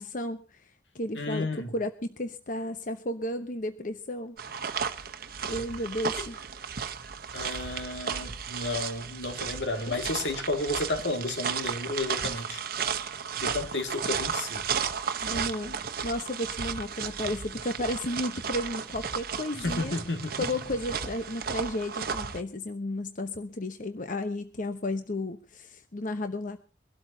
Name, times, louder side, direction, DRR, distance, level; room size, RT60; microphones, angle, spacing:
voice 1, 0.0-1.9 2.2-4.4 5.5-6.4 9.9-10.0 15.2-20.0 20.4-26.6, left 1 dB, 50° left, 1.0 m, -33 dB
voice 2, 1.2-1.7 6.2-6.3 7.3-12.7 13.3-14.6 19.5-20.4, left 2 dB, 85° left, 2.4 m, -32 dB
sound 1, 4.4-22.4, right 6 dB, 55° right, 1.1 m, -34 dB
24.0 x 12.5 x 2.8 m
head